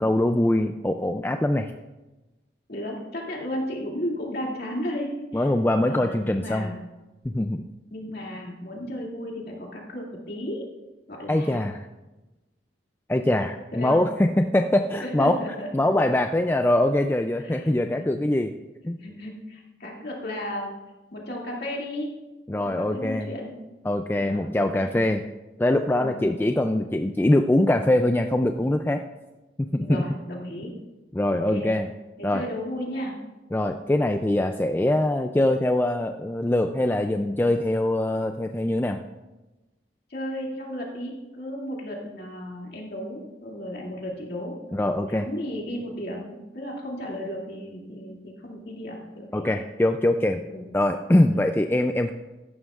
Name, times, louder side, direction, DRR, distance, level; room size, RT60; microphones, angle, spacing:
voice 1, 0.0-1.7 5.3-6.7 7.2-7.6 11.3-11.9 13.1-15.4 15.7-18.5 18.8-19.0 22.5-23.3 23.8-25.2 25.6-29.0 29.6-30.0 31.1-31.9 32.2-32.4 33.5-39.0 44.7-45.3 49.3-50.4 50.7-52.1, left 1 dB, 10° left, 6 dB, 0.3 m, -23 dB
voice 2, 2.7-5.5 5.9-6.8 7.9-10.6 11.1-11.6 13.7-14.0 15.0-15.9 17.4-17.7 18.0-18.2 19.0-20.7 21.1-22.1 22.5-23.6 24.2-24.9 26.0-26.2 29.8-30.8 31.3-31.7 32.2-33.2 40.1-44.5 45.1-49.5 50.5-50.6 51.3-51.4, equal, 55° left, -2 dB, 2.5 m, -34 dB
14.5 x 11.5 x 2.4 m, 1.1 s
head